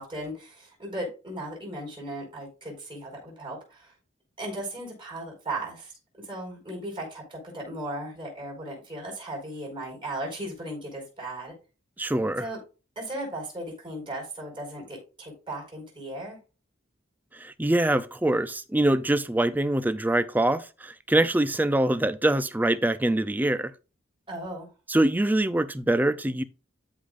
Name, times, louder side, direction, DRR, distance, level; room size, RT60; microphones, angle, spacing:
voice 1, 0.0-3.9 4.4-11.5 12.3-12.6 12.9-16.4 24.3-24.7, right 1 dB, 25° right, 4.7 m, -36 dB
voice 2, 12.0-12.5 17.3-23.7 24.9-26.4, right 1 dB, 10° right, 0.4 m, -24 dB
13.0 x 5.0 x 2.5 m
head